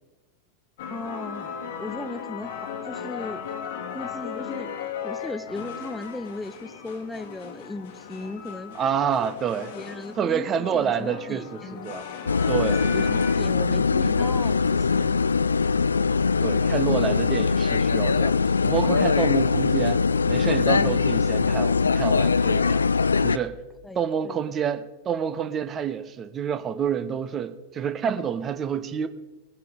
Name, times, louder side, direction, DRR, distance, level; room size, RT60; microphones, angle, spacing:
sound 1, 0.8-13.5, left 7 dB, 55° left, 1.3 m, -37 dB
voice 1, 0.9-2.5 2.8-3.4 3.9-4.7 5.0-8.8 9.6-11.9 12.8-15.5 23.8-24.4, left 2 dB, 5° left, 0.5 m, -37 dB
voice 2, 8.8-9.7 10.2-12.0 12.5-12.8 16.4-18.3 18.6-22.8 23.2-23.6 23.9-29.1, right 8 dB, 25° right, 0.8 m, -28 dB
sound 2, 12.3-23.4, left 5 dB, 75° left, 0.3 m, -22 dB
20.0 x 10.0 x 3.8 m
figure-of-eight pair, 90°, 0 cm